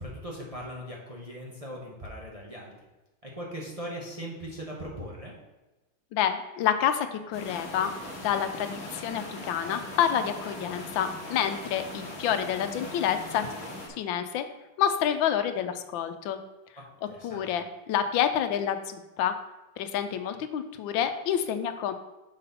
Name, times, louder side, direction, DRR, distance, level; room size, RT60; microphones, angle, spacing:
voice 1, 0.0-2.7 3.2-5.4 16.8-17.5, equal, 25° right, -3 dB, 0.7 m, -39 dB
voice 2, 6.1-7.9 8.2-13.5 14.0-14.4 14.8-16.4 17.2-19.3 19.8-21.9, left 9 dB, 90° left, 9 dB, 1.4 m, -28 dB
sound 1, 7.3-13.9, left 1 dB, 45° left, 1.6 m, -40 dB
6.4 x 4.1 x 5.4 m, 1.1 s
omnidirectional pair, 2.1 m